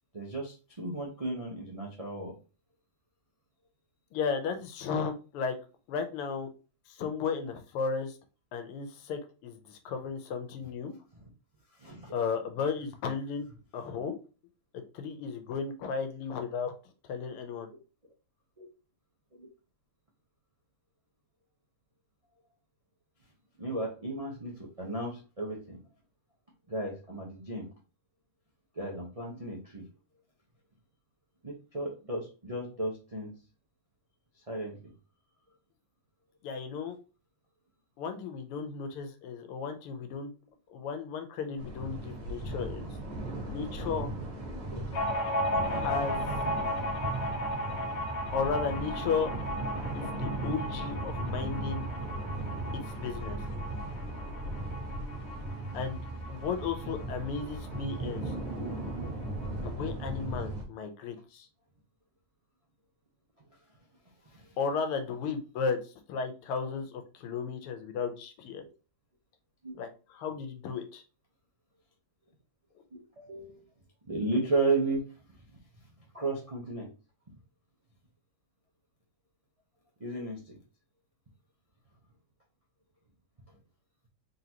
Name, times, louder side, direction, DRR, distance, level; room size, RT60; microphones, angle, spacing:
voice 1, 0.1-2.3 11.8-12.2 18.6-18.7 19.3-19.5 23.6-25.8 26.7-27.7 28.7-29.8 31.4-33.3 34.5-34.8 44.7-44.8 58.6-58.7 64.3-64.5 69.6-69.7 72.9-73.6 74.1-75.0 76.1-76.9 80.0-80.6, right 2 dB, 70° right, -3 dB, 0.3 m, -34 dB
voice 2, 4.1-5.6 5.9-6.5 6.9-8.2 8.5-10.9 12.1-13.5 13.7-14.2 14.9-16.7 17.1-17.7 36.4-36.9 38.0-40.3 40.7-42.9 43.5-44.1 45.7-46.2 48.3-49.3 49.9-51.9 52.7-53.4 55.7-56.0 56.3-58.3 59.6-61.5 64.6-68.6 69.8-71.0, left 5 dB, 90° left, 7 dB, 1.7 m, -34 dB
sound 1, 41.6-60.6, right 1 dB, 40° right, 1.7 m, -37 dB
sound 2, 44.9-58.1 58.3-58.4 58.7-59.5, equal, 60° left, 1.5 m, -36 dB
4.0 x 3.7 x 2.9 m, 0.34 s
omnidirectional pair, 2.4 m